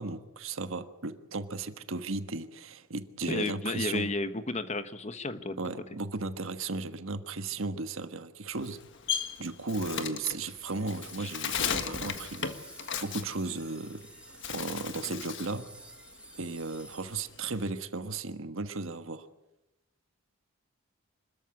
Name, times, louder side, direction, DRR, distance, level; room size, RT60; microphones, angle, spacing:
voice 1, 0.0-4.1 5.6-8.8 9.4-12.7 13.0-14.0 14.3-15.7 16.4-19.3, right 3 dB, 65° right, 1.4 m, -35 dB
voice 2, 3.3-5.6 11.2-11.3, left 2 dB, 30° left, 1.2 m, -32 dB
Bird, 8.5-14.0 14.3-15.6 16.0-17.7, left 7 dB, 55° left, 1.6 m, -36 dB
sound 1, 10.5-17.2, right 2 dB, 5° right, 1.9 m, -52 dB
25.5 x 14.0 x 9.8 m
head